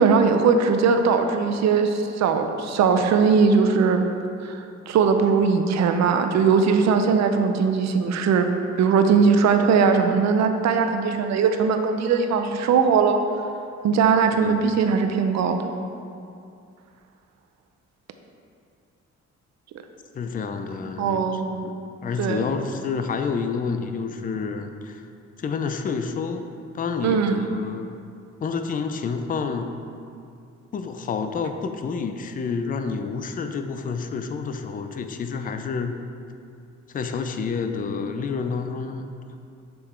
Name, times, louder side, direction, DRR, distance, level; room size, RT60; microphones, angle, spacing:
voice 1, 0.0-4.0 4.4-8.5 8.8-13.2 13.8-15.7 21.0-21.7 22.2-22.4 27.0-27.4, right 5 dB, 65° right, 6 dB, 0.6 m, -20 dB
voice 2, 14.3-14.7 20.1-21.7 22.0-25.0 25.4-26.5 26.7-27.9 28.4-29.7 30.7-35.9 36.9-39.1, left 5 dB, 30° left, 7 dB, 0.4 m, -29 dB
6.8 x 3.5 x 4.3 m, 2.5 s
cardioid pair, 90°, 30 cm